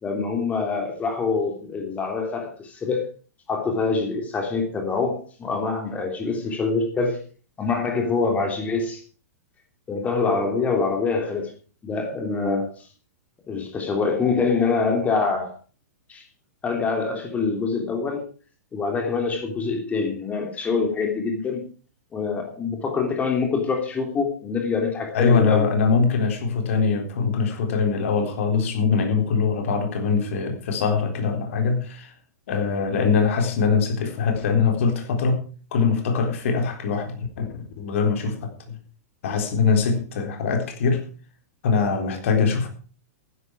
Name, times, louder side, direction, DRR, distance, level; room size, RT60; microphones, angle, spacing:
voice 1, 0.0-3.1 3.5-7.2 7.6-9.0 9.9-11.5 11.8-12.9 13.5-15.5 16.1-16.2 16.6-18.3 18.7-21.6 22.1-25.7, left 4 dB, 15° left, 2 dB, 3.3 m, -25 dB
voice 2, 25.1-32.1 32.5-35.4 35.7-37.5 37.8-38.8 39.2-41.1 41.6-42.7, left 5 dB, 55° left, 4 dB, 3.9 m, -22 dB
15.0 x 11.0 x 4.8 m, 0.38 s
figure-of-eight pair, 105°, 9 cm